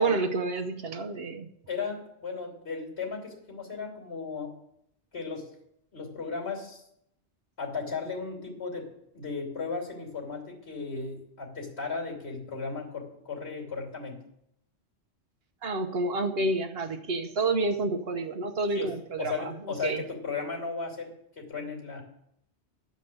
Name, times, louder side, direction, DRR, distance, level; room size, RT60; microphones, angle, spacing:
voice 1, 0.0-1.5 15.6-20.0, right 3 dB, 65° right, 6 dB, 1.1 m, -29 dB
voice 2, 1.7-4.5 5.1-5.5 5.9-6.8 7.6-8.9 9.1-14.2 18.7-22.0, left 4 dB, 70° left, -1 dB, 3.2 m, -35 dB
11.5 x 5.3 x 7.8 m, 0.77 s
omnidirectional pair, 1.1 m